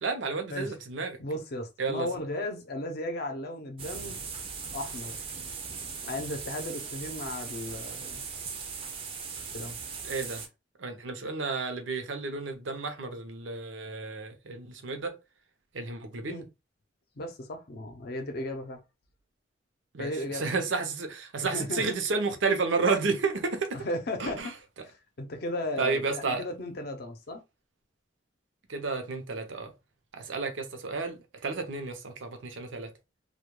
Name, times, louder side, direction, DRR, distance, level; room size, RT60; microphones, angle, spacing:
voice 1, 0.0-1.2 1.8-2.1 10.0-10.4 10.8-15.1 15.7-16.4 19.9-23.8 24.2-24.5 25.8-26.4 28.7-29.7 30.1-32.9, right 4 dB, 85° right, 0.6 m, -31 dB
voice 2, 1.2-4.2 4.7-5.3 6.0-8.2 9.5-9.8 16.3-16.5 17.2-18.8 20.0-20.4 21.4-22.0 23.7-24.4 24.8-27.4, left 1 dB, 55° left, 0.5 m, -35 dB
sound 1, 3.8-10.5, right 5 dB, 30° right, 0.4 m, -39 dB
2.2 x 2.2 x 3.0 m
head